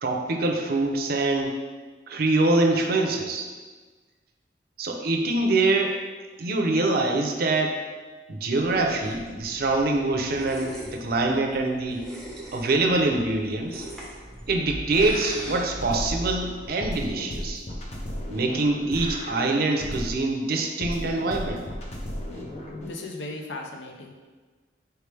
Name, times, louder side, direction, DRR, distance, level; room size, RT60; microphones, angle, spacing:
voice 1, 0.0-1.5 2.1-3.5 4.8-6.0 6.4-7.8 8.3-12.0 12.5-13.8 14.5-17.6 18.3-21.6, right 2 dB, 60° right, 3 dB, 0.5 m, -24 dB
sound 1, 8.5-16.7, equal, 5° left, 0.8 m, -40 dB
sound 2, 14.9-16.3 16.8-20.3 20.8-22.9, left 1 dB, 40° left, 0.6 m, -35 dB
voice 2, 22.8-24.1, left 2 dB, 80° left, 2 dB, 0.6 m, -36 dB
4.6 x 3.2 x 3.4 m, 1.4 s
head